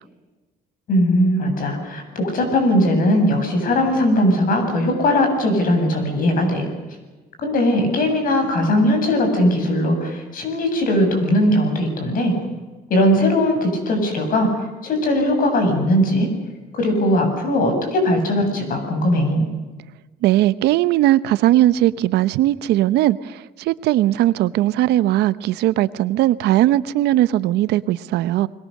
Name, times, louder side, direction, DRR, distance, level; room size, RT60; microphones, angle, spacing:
voice 1, 0.9-6.7 7.4-12.3 12.9-14.5 14.8-16.3 16.7-19.5, left 1 dB, 55° left, 5 dB, 7.5 m, -19 dB
voice 2, 20.2-28.5, right 14 dB, 80° right, 15 dB, 0.9 m, -18 dB
29.5 x 22.0 x 6.6 m, 1.3 s
cardioid pair, 110°, 17 cm